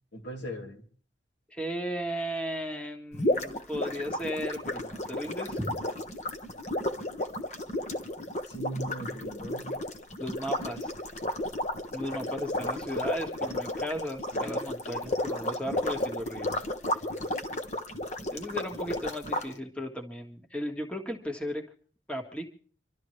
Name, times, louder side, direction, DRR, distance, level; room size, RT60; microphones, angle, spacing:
voice 1, 0.1-0.9 8.4-9.8 12.0-12.2 14.8-15.0, right 1 dB, 70° left, 1 dB, 2.7 m, -39 dB
voice 2, 1.5-5.8 10.2-10.9 11.9-16.6 18.3-21.6 22.1-22.5, equal, 5° left, 3 dB, 1.6 m, -35 dB
sound 1, 3.1-19.5, left 1 dB, 35° left, 1.2 m, -33 dB
26.0 x 12.5 x 3.2 m, 0.44 s
head